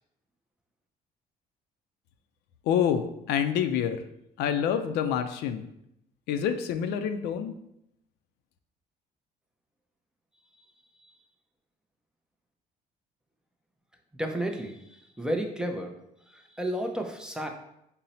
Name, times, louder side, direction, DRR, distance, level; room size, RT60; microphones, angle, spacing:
voice 1, 2.7-4.0 4.4-5.7 6.3-7.5, left 8 dB, 80° left, 8 dB, 0.4 m, -27 dB
voice 2, 14.2-15.9 16.3-17.5, right 1 dB, 5° right, 3 dB, 0.5 m, -32 dB
3.9 x 2.0 x 4.1 m, 0.79 s
cardioid pair, 110°, 17 cm